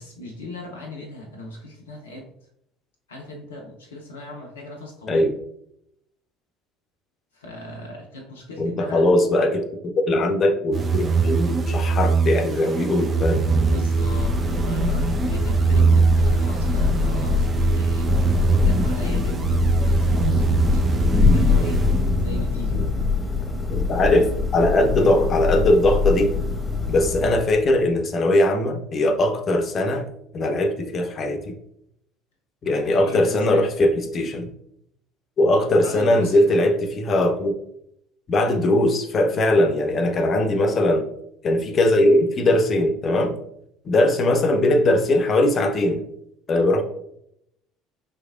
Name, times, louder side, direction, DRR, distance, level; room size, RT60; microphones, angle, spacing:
voice 1, 0.0-2.3 3.1-5.3 7.3-9.1 13.5-18.1 18.5-20.8 21.3-22.9 32.9-33.7 35.8-36.4 40.5-40.8, left 1 dB, 80° left, 1 dB, 0.6 m, -37 dB
voice 2, 8.6-13.5 22.8-22.9 23.7-26.4 26.9-31.5 32.6-34.5 35.4-37.5 38.3-41.1 41.4-43.4 43.8-46.0 46.5-46.8, left 1 dB, 40° left, 5 dB, 0.7 m, -20 dB
sound 1, 10.7-22.5, right 5 dB, 35° right, 0.6 m, -22 dB
Thunder / Rain, 13.5-27.9, left 4 dB, 15° left, 1.1 m, -23 dB
5.1 x 3.3 x 2.4 m, 0.75 s
figure-of-eight pair, 60°, 0 cm